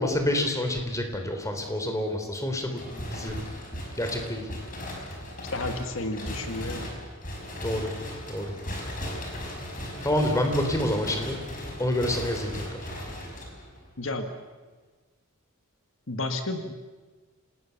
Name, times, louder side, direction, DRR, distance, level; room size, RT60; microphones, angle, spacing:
voice 1, 0.0-3.4 4.0-4.4 7.6-7.9 8.3-8.5 10.0-11.4 11.8-12.6, left 1 dB, 15° left, 4 dB, 3.3 m, -27 dB
sound 1, 2.7-13.9, left 1 dB, 40° left, 5.5 m, -37 dB
voice 2, 5.5-6.9 14.0-14.3 16.1-16.7, left 2 dB, 70° left, 7 dB, 1.6 m, -32 dB
27.0 x 19.0 x 6.9 m, 1.3 s
head